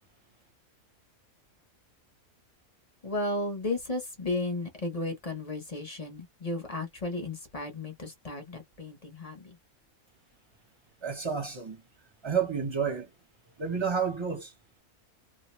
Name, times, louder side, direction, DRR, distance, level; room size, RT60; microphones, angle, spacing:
voice 1, 3.0-9.6, left 2 dB, 30° left, 0.8 m, -34 dB
voice 2, 11.0-11.8 12.2-13.1 13.6-14.5, right 6 dB, 25° right, 0.8 m, -30 dB
2.6 x 2.2 x 3.0 m
omnidirectional pair, 1.5 m